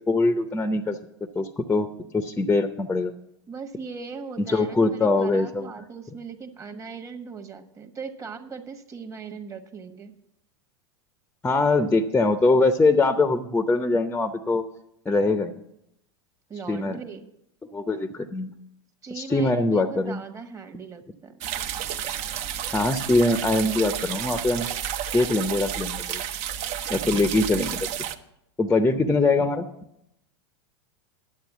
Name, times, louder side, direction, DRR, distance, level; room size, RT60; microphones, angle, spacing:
voice 1, 0.1-1.0 1.3-1.9 2.1-3.1 4.5-5.7 11.4-14.6 15.1-15.5 16.7-17.0 17.7-18.5 19.1-20.2 22.7-24.7 25.1-26.2 26.9-27.9 28.6-29.7, left 3 dB, 10° left, 9 dB, 0.7 m, -22 dB
voice 2, 3.5-10.2 16.5-17.3 19.0-21.5 26.8-26.9, right 5 dB, 20° right, 7 dB, 1.2 m, -39 dB
sound 1, 21.4-28.2, right 10 dB, 50° right, 0.8 m, -31 dB
10.5 x 7.6 x 7.3 m, 0.79 s
hypercardioid pair, 110°, 15 cm